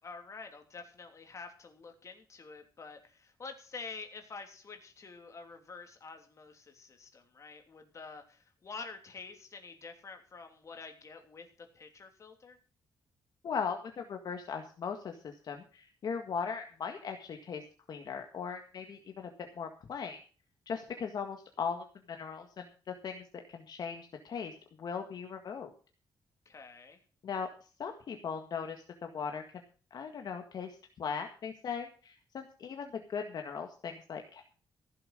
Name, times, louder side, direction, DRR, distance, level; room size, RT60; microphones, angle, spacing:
voice 1, 0.0-12.6 26.4-27.0, left 4 dB, 40° left, 5 dB, 3.1 m, -48 dB
voice 2, 13.4-17.6 17.9-20.2 20.7-24.5 24.8-25.7 27.2-27.5 27.8-29.4 29.9-34.4, left 6 dB, 55° left, 4 dB, 1.8 m, -39 dB
15.5 x 7.7 x 6.6 m, 0.38 s
cardioid pair, 135°, 8 cm